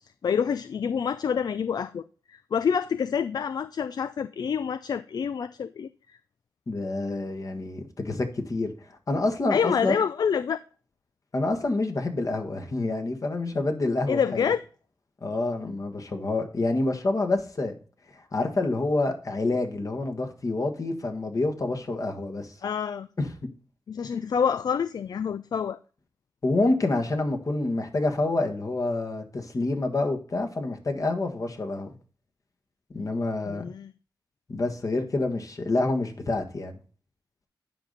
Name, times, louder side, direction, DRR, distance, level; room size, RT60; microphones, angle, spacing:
voice 1, 0.2-2.0 2.3-5.9 9.5-10.6 14.1-14.6 22.6-23.1 23.9-25.8 33.5-33.9, left 7 dB, 65° left, 0.4 m, -27 dB
voice 2, 6.7-10.0 11.3-14.4 15.2-17.7 18.3-22.5 23.2-23.3 26.4-31.9 32.9-33.7 34.5-36.7, left 2 dB, 50° left, 1.6 m, -27 dB
9.9 x 5.2 x 4.0 m
cardioid pair, 75°, 8 cm